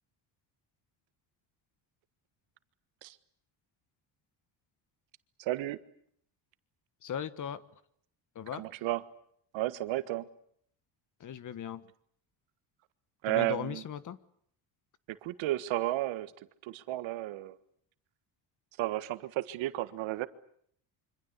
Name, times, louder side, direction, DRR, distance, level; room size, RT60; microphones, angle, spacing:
voice 1, 5.4-5.8 8.6-9.0 9.5-10.3 13.2-13.8 15.1-16.3 16.6-17.6 18.8-20.3, right 16 dB, 75° right, 12 dB, 1.6 m, -33 dB
voice 2, 7.0-7.6 8.3-8.6 11.2-11.8 13.3-14.2, left 9 dB, 40° left, 15 dB, 1.3 m, -38 dB
26.0 x 25.5 x 8.2 m, 0.66 s
cardioid pair, 130°, 47 cm